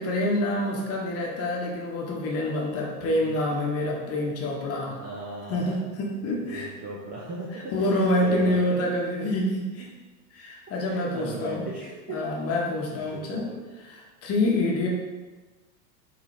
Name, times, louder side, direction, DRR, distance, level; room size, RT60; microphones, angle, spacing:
voice 1, 0.0-4.9 5.5-6.7 7.5-9.9 10.3-11.6 12.1-13.5 13.8-14.9, left 1 dB, 30° left, -1 dB, 1.0 m, -27 dB
voice 2, 3.0-3.4 4.8-5.8 6.4-7.6 7.9-8.8 10.8-12.2 13.0-13.6, right 2 dB, 20° right, -5 dB, 0.4 m, -38 dB
4.3 x 3.8 x 3.1 m, 1.3 s
hypercardioid pair, 120°, 48 cm